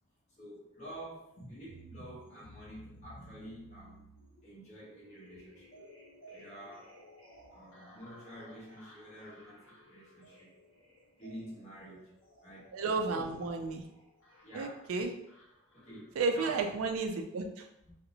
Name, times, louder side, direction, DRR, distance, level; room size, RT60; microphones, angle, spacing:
voice 1, 0.3-4.0 4.4-5.8 6.3-7.0 7.5-10.5 11.1-12.8 13.1-13.3 14.4-14.9 15.7-16.7 17.9-18.0, equal, 35° left, -9 dB, 0.9 m, -49 dB
sound 1, 1.4-16.5, equal, 65° left, 0.7 m, -56 dB
voice 2, 12.7-13.9 14.5-15.1 16.2-17.7, right 4 dB, 75° right, 4 dB, 0.3 m, -32 dB
2.7 x 2.0 x 2.7 m, 0.80 s
head